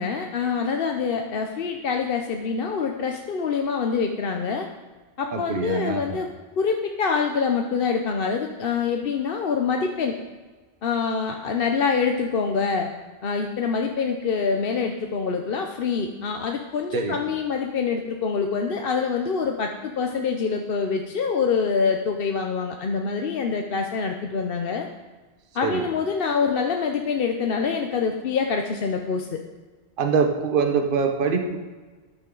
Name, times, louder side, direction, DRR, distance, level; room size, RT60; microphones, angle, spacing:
voice 1, 0.0-4.7 5.2-6.3 6.6-10.2 10.8-12.9 13.2-24.9 25.5-29.4, left 5 dB, 60° left, 3 dB, 0.9 m, -25 dB
voice 2, 5.3-6.3 16.9-17.2 25.6-25.9 30.0-31.6, right 5 dB, 55° right, 4 dB, 1.1 m, -24 dB
14.0 x 9.8 x 3.8 m, 1.3 s
omnidirectional pair, 1.1 m